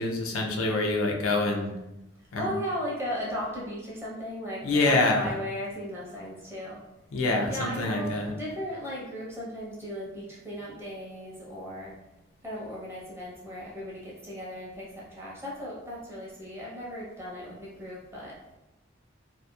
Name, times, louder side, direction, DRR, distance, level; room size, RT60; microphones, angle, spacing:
voice 1, 0.0-1.7 2.3-2.5 4.6-5.3 7.1-8.3, left 2 dB, 90° left, 2 dB, 0.4 m, -26 dB
voice 2, 2.4-6.8 7.5-11.9 12.4-18.4, equal, 10° right, -5 dB, 0.6 m, -36 dB
2.8 x 2.4 x 2.3 m, 0.96 s
head